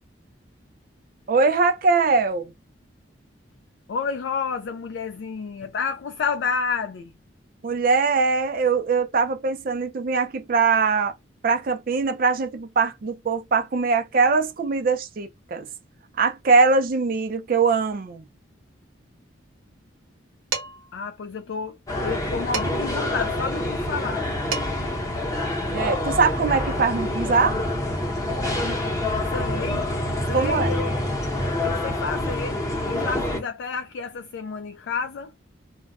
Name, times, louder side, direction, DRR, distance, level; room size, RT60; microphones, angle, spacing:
voice 1, 1.3-2.5 7.6-11.1 11.4-15.7 16.2-18.2 25.6-27.6 30.3-30.7, right 4 dB, 45° right, 0.4 m, -22 dB
voice 2, 3.9-7.1 20.9-21.8 22.0-24.3 29.3-29.9 30.3-30.9 31.6-35.3, left 5 dB, 65° left, 0.3 m, -30 dB
Dishes pots and pans, 20.5-20.9 22.5-23.0 24.2-24.3 24.5-25.0, right 4 dB, 90° right, 0.9 m, -31 dB
sound 1, 21.9-33.4, left 1 dB, 20° left, 0.8 m, -26 dB
2.2 x 2.1 x 3.5 m
head